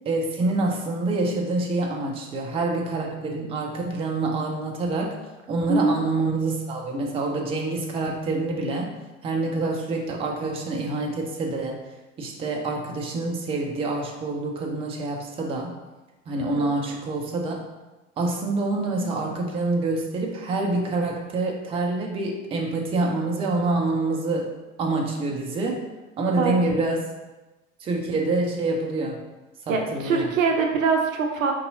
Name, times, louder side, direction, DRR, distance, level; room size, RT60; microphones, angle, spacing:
voice 1, 0.1-5.1 5.5-8.9 9.2-11.8 12.2-15.7 16.3-17.6 18.2-25.8 26.2-27.1 27.8-29.2 29.7-30.3, right 2 dB, 15° right, 1 dB, 0.5 m, -26 dB
voice 2, 29.7-31.5, right 4 dB, 75° right, 3 dB, 0.6 m, -23 dB
4.5 x 2.7 x 2.6 m, 1.1 s
figure-of-eight pair, 80°, 40 cm